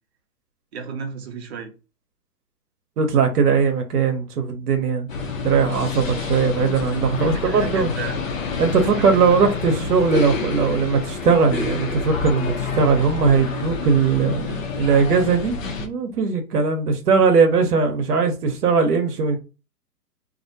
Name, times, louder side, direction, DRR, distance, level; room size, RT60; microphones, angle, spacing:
voice 1, 0.7-1.7 7.2-8.2 8.7-9.2, right 5 dB, 45° right, 0.6 m, -33 dB
voice 2, 3.0-5.1 5.4-7.9 8.6-19.4, right 5 dB, 75° right, 0.8 m, -19 dB
sound 1, 5.1-15.9, left 5 dB, 55° left, 0.6 m, -28 dB
2.4 x 2.1 x 2.7 m
hypercardioid pair, 140°, 48 cm